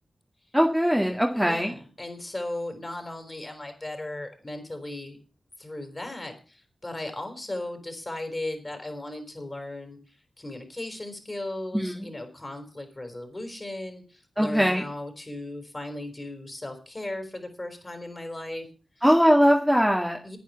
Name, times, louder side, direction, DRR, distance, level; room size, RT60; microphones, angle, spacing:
voice 1, 0.5-1.7 11.7-12.1 14.4-14.8 19.0-20.2, equal, ahead, 1 dB, 2.0 m, -21 dB
voice 2, 1.3-5.2 5.6-18.7 19.0-19.1 20.2-20.4, left 1 dB, 30° left, 6 dB, 4.7 m, -37 dB
10.5 x 9.5 x 7.1 m, 0.38 s
cardioid pair, 55°, 0 cm